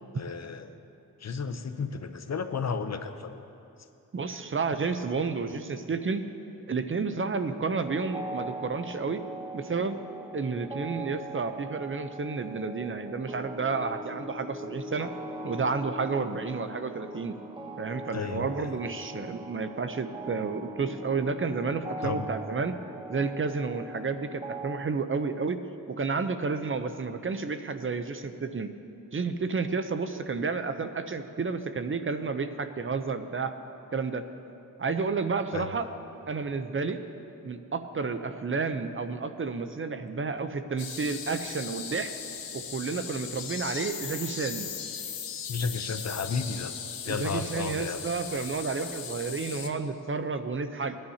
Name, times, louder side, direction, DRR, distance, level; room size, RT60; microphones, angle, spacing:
voice 1, 0.1-0.7 1.2-3.4 18.1-18.7 22.0-22.3 35.5-35.7 45.5-46.7 47.1-48.0, left 5 dB, 50° left, 8 dB, 0.7 m, -33 dB
voice 2, 4.1-6.2 6.7-9.2 9.5-10.0 10.3-15.1 15.4-17.3 17.8-22.8 23.1-28.7 29.1-33.5 33.9-34.3 34.8-35.9 36.3-37.0 37.4-42.2 42.5-44.7 47.0-51.0, right 4 dB, 35° right, 9 dB, 0.7 m, -31 dB
sound 1, 7.8-24.9, right 1 dB, 15° right, 0.9 m, -41 dB
sound 2, 40.8-49.7, left 7 dB, 90° left, 0.9 m, -38 dB
20.0 x 10.5 x 2.8 m, 2.8 s
cardioid pair, 65°, 34 cm